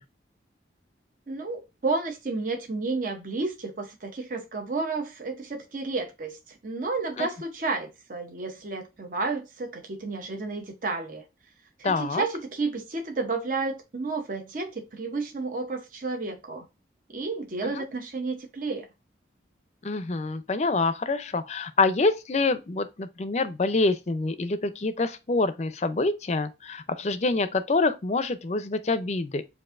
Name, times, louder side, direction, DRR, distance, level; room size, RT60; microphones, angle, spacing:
voice 1, 1.3-11.2 11.8-16.6 17.1-18.9, right 3 dB, 45° right, 0.7 m, -31 dB
voice 2, 11.8-12.2 17.6-17.8 19.8-29.4, left 3 dB, 40° left, 0.5 m, -26 dB
7.5 x 2.6 x 2.4 m
head